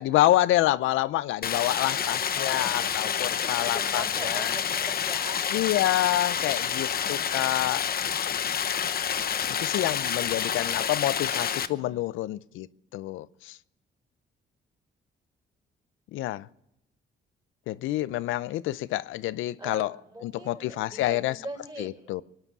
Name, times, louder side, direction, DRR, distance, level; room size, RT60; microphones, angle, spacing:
voice 1, 0.0-4.5 5.5-7.8 9.6-12.7 12.9-13.6 16.1-16.5 17.7-19.9 20.2-21.4 21.8-22.2, left 15 dB, 90° left, 0.5 m, -27 dB
Stream, 1.4-11.7, left 8 dB, 50° left, 0.9 m, -28 dB
voice 2, 2.3-5.5 11.5-12.0 19.6-22.1, right 1 dB, 20° right, 5.1 m, -42 dB
24.0 x 9.9 x 6.0 m
cardioid pair, 90°, 20 cm